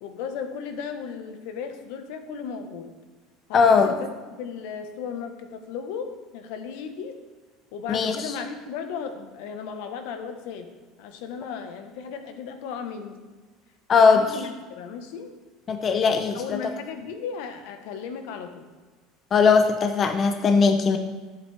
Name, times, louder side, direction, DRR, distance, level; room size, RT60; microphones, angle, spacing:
voice 1, 0.0-2.9 3.5-7.1 7.7-10.7 11.0-13.2 13.9-15.3 16.3-18.6, left 6 dB, 70° left, 7 dB, 1.0 m, -35 dB
voice 2, 3.5-3.9 7.9-8.3 13.9-14.2 15.7-16.6 19.3-21.0, left 5 dB, 25° left, 6 dB, 0.5 m, -19 dB
11.0 x 8.2 x 3.3 m, 1.3 s
cardioid pair, 160°, 0 cm